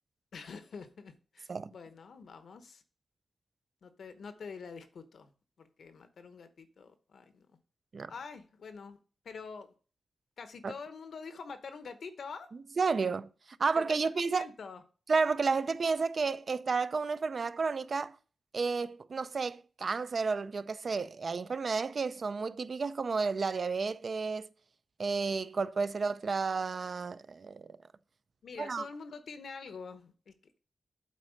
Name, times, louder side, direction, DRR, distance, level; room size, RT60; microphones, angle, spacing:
voice 1, 0.3-2.8 3.8-5.3 5.6-7.5 8.1-9.0 9.2-9.7 10.4-12.5 13.8-14.8 28.4-30.6, left 5 dB, 80° left, 0.9 m, -46 dB
voice 2, 12.8-13.3 13.6-14.5 15.1-18.2 18.5-24.5 25.0-27.7 28.6-28.8, right 4 dB, 55° right, 0.4 m, -31 dB
8.3 x 4.1 x 6.4 m
wide cardioid pair, 95°, 0 cm